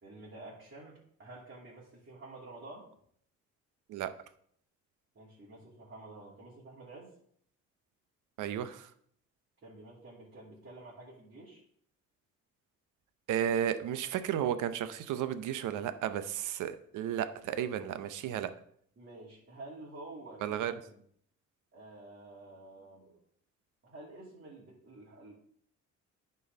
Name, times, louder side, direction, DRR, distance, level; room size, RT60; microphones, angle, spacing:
voice 1, 0.0-2.9 5.1-7.1 9.6-11.6 19.0-21.0 21.7-23.2 23.8-25.3, right 2 dB, 40° right, -6 dB, 2.8 m, -50 dB
voice 2, 8.4-8.9 13.3-18.5 20.4-20.7, right 10 dB, 85° right, 12 dB, 0.7 m, -33 dB
10.0 x 4.6 x 5.3 m, 0.66 s
cardioid pair, 90°, 30 cm